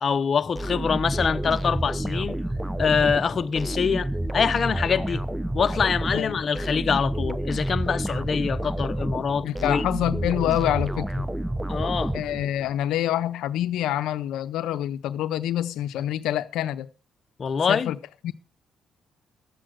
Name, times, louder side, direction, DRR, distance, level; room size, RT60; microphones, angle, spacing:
voice 1, 0.0-2.4 2.8-5.2 5.5-9.8 11.7-12.1 17.4-17.9, left 6 dB, 45° left, 0.8 m, -25 dB
sound 1, 0.5-12.8, right 1 dB, 5° right, 0.6 m, -29 dB
voice 2, 9.4-11.2 12.1-16.9 17.7-18.0 18.2-18.3, left 12 dB, 90° left, 0.6 m, -26 dB
12.5 x 7.8 x 6.3 m
cardioid pair, 90°, 0 cm